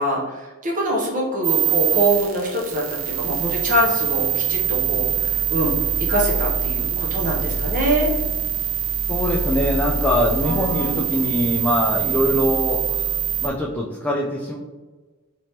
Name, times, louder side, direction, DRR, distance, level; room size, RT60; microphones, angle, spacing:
voice 1, 0.0-5.7 6.1-8.1 10.4-11.1, right 1 dB, 40° right, -2 dB, 0.6 m, -24 dB
sound 1, 1.4-13.5, right 8 dB, 75° right, 0.7 m, -24 dB
voice 2, 9.1-13.1 13.4-14.6, equal, 10° left, -3 dB, 0.3 m, -22 dB
3.2 x 3.0 x 2.8 m, 1.3 s
head